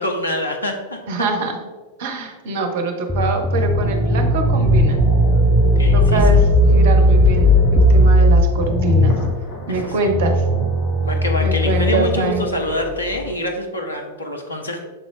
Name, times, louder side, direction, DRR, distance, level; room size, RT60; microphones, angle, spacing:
voice 1, 0.0-1.0 5.8-6.4 9.7-10.1 11.0-14.8, left 1 dB, 80° left, 2 dB, 0.7 m, -25 dB
voice 2, 1.1-1.6 2.0-5.0 5.9-9.1 9.7-10.4 11.4-12.4, right 3 dB, 55° right, 5 dB, 0.8 m, -24 dB
sound 1, 3.1-8.4, left 1 dB, ahead, 0.6 m, -15 dB
sound 2, 3.5-13.3, right 1 dB, 35° left, 1.1 m, -22 dB
7.0 x 3.8 x 3.7 m, 1.3 s
figure-of-eight pair, 90°, 0 cm